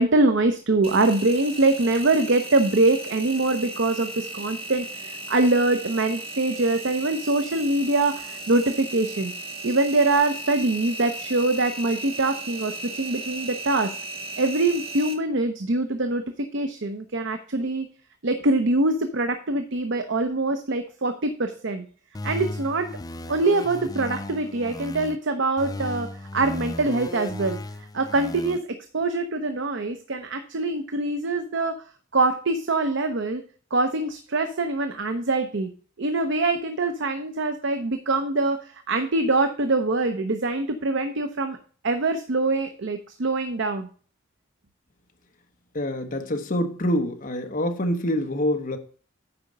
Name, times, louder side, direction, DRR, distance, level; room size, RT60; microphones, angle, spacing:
voice 1, 0.0-9.3 9.6-13.9 14.4-17.9 18.2-21.8 22.2-22.9 23.3-27.6 27.9-28.7 28.9-31.8 32.1-33.4 33.7-35.7 36.0-41.6 41.8-43.9, right 2 dB, 65° right, 8 dB, 0.8 m, -24 dB
Engine, 0.8-15.1, right 2 dB, 30° right, 1.3 m, -36 dB
sound 1, 22.1-25.2 25.6-28.6, left 2 dB, 20° left, 0.5 m, -35 dB
voice 2, 45.7-48.8, left 1 dB, 45° left, 5 dB, 1.2 m, -26 dB
8.8 x 5.0 x 5.3 m, 0.42 s
head